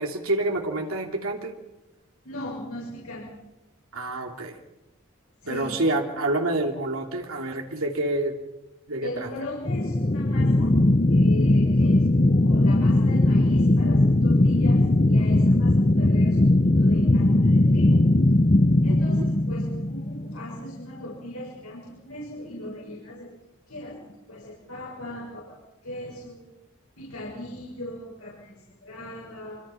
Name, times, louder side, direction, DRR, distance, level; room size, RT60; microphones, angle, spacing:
voice 1, 0.0-1.5 3.9-4.6 5.5-8.4 8.9-9.3 18.9-19.3, right 2 dB, 70° right, 2 dB, 2.8 m, -28 dB
voice 2, 2.2-3.3 5.4-5.8 9.0-10.7 11.1-16.5 16.8-18.1 18.8-23.3 23.7-25.6 25.8-26.5 27.0-29.6, left 1 dB, 85° left, -4 dB, 6.8 m, -39 dB
sound 1, 9.7-20.6, left 1 dB, 30° left, 0.8 m, -19 dB
26.5 x 25.0 x 5.8 m, 0.97 s
head